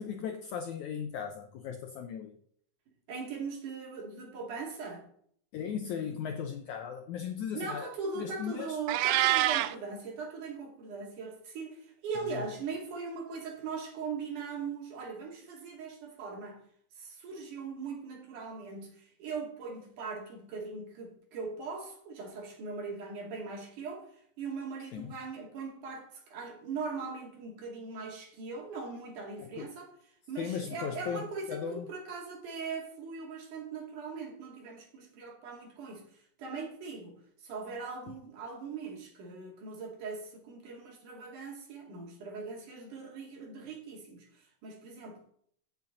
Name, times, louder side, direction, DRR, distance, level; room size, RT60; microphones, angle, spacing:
voice 1, 0.0-2.4 5.5-8.8 12.3-12.4 24.9-25.1 29.4-29.7 30.4-31.9, left 7 dB, 75° left, 1.7 m, -37 dB
voice 2, 3.1-5.1 7.5-16.6 17.0-29.9 30.3-45.3, right 4 dB, 60° right, 3.6 m, -40 dB
Meow, 8.9-9.7, right 15 dB, 85° right, 1.8 m, -26 dB
15.0 x 7.3 x 3.9 m
omnidirectional pair, 4.2 m